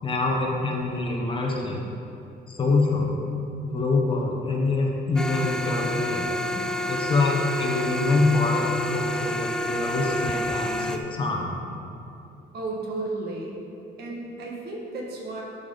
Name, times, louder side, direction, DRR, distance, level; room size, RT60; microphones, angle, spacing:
voice 1, 0.0-1.8 2.5-3.1 3.6-6.3 6.9-11.6, left 3 dB, 30° left, -1 dB, 1.1 m, -25 dB
sound 1, 5.2-11.0, left 1 dB, 5° left, 0.4 m, -29 dB
voice 2, 12.5-13.6 14.0-15.4, right 2 dB, 70° right, -2 dB, 1.7 m, -33 dB
12.5 x 5.2 x 3.9 m, 2.7 s
cardioid pair, 160°, 17 cm